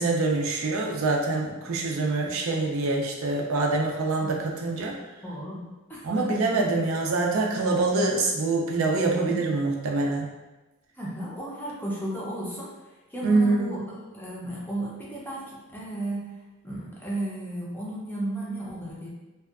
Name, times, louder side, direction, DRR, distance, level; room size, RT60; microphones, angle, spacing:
voice 1, 0.0-5.0 6.0-10.3 13.2-13.7, right 3 dB, 70° right, 0 dB, 0.4 m, -25 dB
voice 2, 5.2-6.3 9.2-9.4 11.0-12.7 13.1-16.3 16.6-19.1, right 1 dB, 10° left, -6 dB, 0.5 m, -34 dB
2.6 x 2.2 x 2.3 m, 1.1 s
head